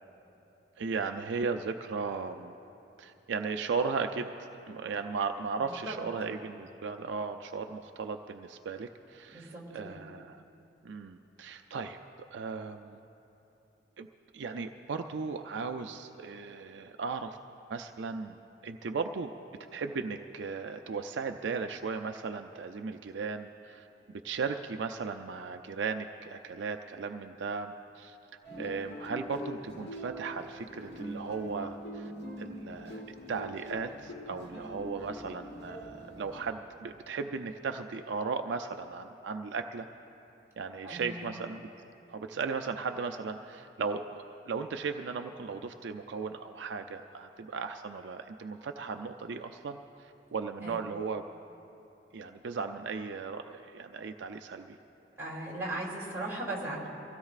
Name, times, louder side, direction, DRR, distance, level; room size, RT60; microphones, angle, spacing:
voice 1, 0.8-2.5 3.0-10.4 10.8-12.0 12.3-13.0 14.0-14.1 14.3-17.4 17.7-18.4 18.6-19.3 19.7-28.2 28.6-32.1 32.4-33.0 33.3-39.9 40.6-41.7 42.1-51.2 52.1-54.8, right 5 dB, 70° right, 5 dB, 0.4 m, -36 dB
voice 2, 5.6-6.0 9.3-10.0 40.8-41.3 50.6-50.8 55.2-56.9, right 1 dB, 15° right, -4 dB, 2.7 m, -38 dB
sound 1, 28.4-36.5, equal, 60° left, 1.2 m, -43 dB
25.0 x 16.5 x 2.4 m, 2.9 s
head